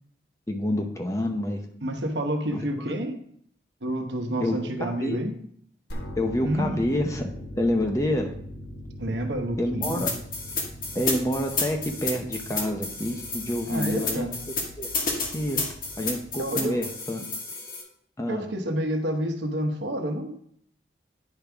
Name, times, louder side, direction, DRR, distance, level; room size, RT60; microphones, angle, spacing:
voice 1, 0.5-1.6 2.5-2.9 4.4-5.2 6.2-8.3 9.6-10.1 10.9-14.3 14.8-14.9 15.3-15.6 16.0-17.2 18.2-18.5, left 1 dB, 15° left, 4 dB, 0.7 m, -28 dB
voice 2, 1.8-3.1 3.8-5.3 6.4-6.8 9.0-10.1 13.7-14.3 16.4-16.8 18.3-20.3, right 1 dB, 80° right, 4 dB, 1.1 m, -29 dB
sound 1, 5.9-16.9, equal, 75° left, 1.5 m, -41 dB
sound 2, 9.8-17.8, left 3 dB, 50° left, 1.5 m, -31 dB
10.0 x 5.3 x 3.5 m, 0.65 s
head